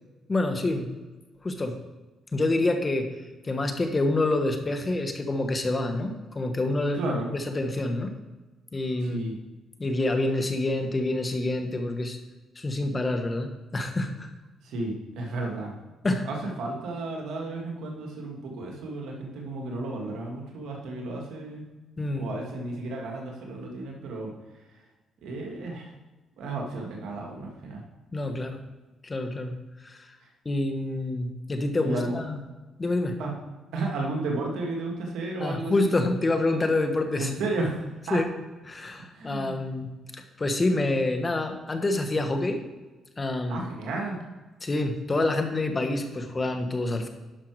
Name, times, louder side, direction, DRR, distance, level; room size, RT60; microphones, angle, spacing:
voice 1, 0.3-0.9 1.4-1.7 2.3-3.1 3.4-8.1 8.7-9.3 9.8-12.2 12.6-14.3 16.0-16.2 22.0-22.3 28.1-28.6 29.0-29.5 29.8-30.1 30.4-32.4 32.8-33.1 35.4-37.3 38.1-38.2 38.7-39.9 40.1-42.6 43.2-43.6 44.6-47.1, left 2 dB, 25° left, 5 dB, 1.4 m, -27 dB
voice 2, 6.9-7.3 9.0-9.4 14.6-15.8 16.2-21.7 22.1-24.3 24.7-24.8 25.2-25.9 26.4-27.8 31.8-32.2 33.2-33.4 33.7-36.1 37.2-38.2 39.1-39.6 43.5-44.2, right 2 dB, 80° right, 0 dB, 1.9 m, -33 dB
11.0 x 5.8 x 4.7 m, 1.2 s
cardioid pair, 90°, 0 cm